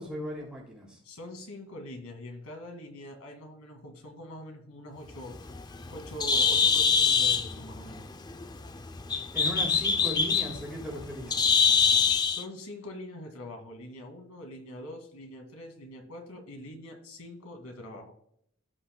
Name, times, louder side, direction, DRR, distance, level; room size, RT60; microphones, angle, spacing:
voice 1, 0.0-1.0 9.3-11.4, left 1 dB, 5° right, -4 dB, 3.2 m, -37 dB
voice 2, 1.0-5.3 5.9-8.1 12.2-18.1, left 1 dB, 85° left, 3 dB, 2.2 m, -43 dB
Bird, 5.1-12.4, left 5 dB, 20° left, 0.4 m, -25 dB
16.5 x 5.7 x 2.2 m, 0.69 s
head